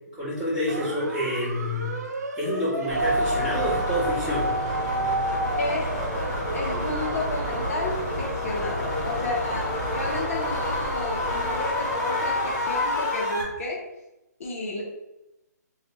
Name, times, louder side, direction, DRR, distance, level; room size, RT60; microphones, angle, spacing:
voice 1, 0.1-1.9 2.3-4.5, equal, 10° right, -12 dB, 1.4 m, -28 dB
sound 1, 0.7-7.9, right 1 dB, 65° right, 0.5 m, -31 dB
sound 2, 2.9-13.4, left 1 dB, 25° left, 0.9 m, -28 dB
voice 2, 5.6-6.1 6.5-13.8 14.4-14.8, left 2 dB, 50° left, -2 dB, 0.7 m, -32 dB
3.4 x 2.2 x 2.9 m, 0.92 s
hypercardioid pair, 150°, 10 cm